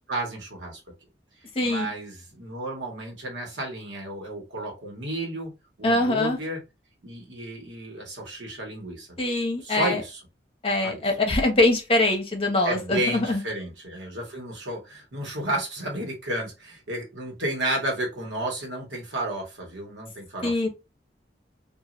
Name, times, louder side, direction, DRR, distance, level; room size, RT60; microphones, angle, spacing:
voice 1, 0.1-0.8 1.6-5.5 5.8-6.6 7.0-9.2 9.6-10.2 10.8-11.0 12.6-20.7, right 1 dB, 85° right, 1.3 m, -32 dB
voice 2, 1.5-1.9 5.8-6.4 9.2-10.0 10.6-13.4 20.4-20.7, left 2 dB, 30° left, 0.9 m, -23 dB
3.1 x 2.5 x 2.5 m
head